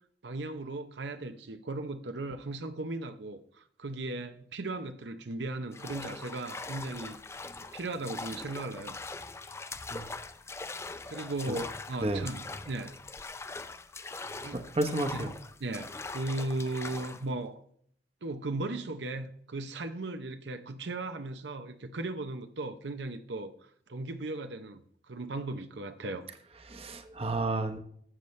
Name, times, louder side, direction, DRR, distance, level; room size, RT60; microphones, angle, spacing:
voice 1, 0.2-7.2 7.6-9.0 11.1-12.9 14.2-14.6 15.1-15.2 15.6-17.6 18.2-24.8 25.1-26.3, right 2 dB, 75° right, 0.7 m, -37 dB
sound 1, 5.7-17.3, left 3 dB, 15° left, 0.4 m, -42 dB
voice 2, 14.5-15.3 26.7-27.8, right 2 dB, 35° right, 0.9 m, -31 dB
12.5 x 8.0 x 3.2 m
head